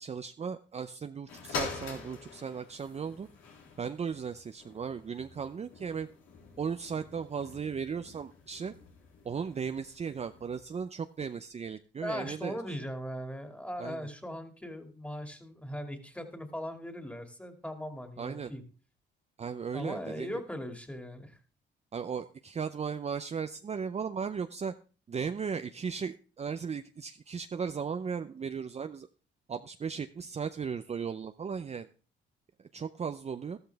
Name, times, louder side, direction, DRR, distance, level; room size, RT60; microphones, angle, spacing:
voice 1, 0.0-3.3 3.8-6.1 6.6-8.7 9.2-12.6 13.8-14.0 18.2-18.5 19.4-20.3 21.9-24.7 25.1-29.1 29.5-31.9 32.6-33.6, right 6 dB, 35° right, 9 dB, 0.6 m, -36 dB
sound 1, 1.3-10.8 11.5-11.6, left 5 dB, 90° left, 3.6 m, -45 dB
voice 2, 12.0-18.6 19.7-21.4, equal, 5° left, 6 dB, 2.3 m, -39 dB
13.5 x 13.0 x 3.5 m, 0.37 s
cardioid pair, 90°, 20 cm